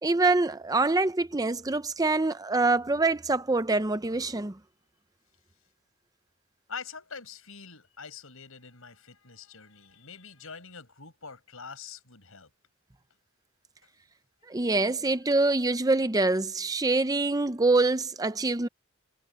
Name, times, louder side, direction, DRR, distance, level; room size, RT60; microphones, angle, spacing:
voice 1, 0.0-4.6 14.5-18.7, right 3 dB, 15° right, 0.6 m, -25 dB
voice 2, 6.7-12.5, left 5 dB, 70° left, 5.5 m, -44 dB
head